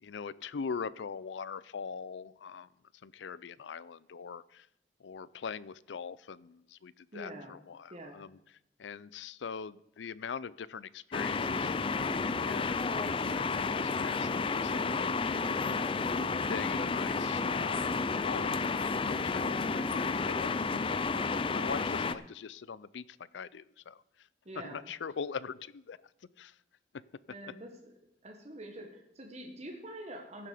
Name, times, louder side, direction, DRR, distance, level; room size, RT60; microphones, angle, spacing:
voice 1, 0.0-2.7 3.0-4.7 5.0-8.4 8.8-15.6 16.5-24.3 24.6-26.0 26.4-26.6 26.9-27.0, left 6 dB, 85° left, 20 dB, 0.5 m, -42 dB
voice 2, 7.1-7.6 7.9-8.2 24.4-24.9 27.3-27.7 28.2-30.5, right 1 dB, 40° right, 2 dB, 1.5 m, -45 dB
sound 1, 11.1-22.1, left 4 dB, 30° left, 0.4 m, -31 dB
15.5 x 7.6 x 5.0 m, 0.79 s
head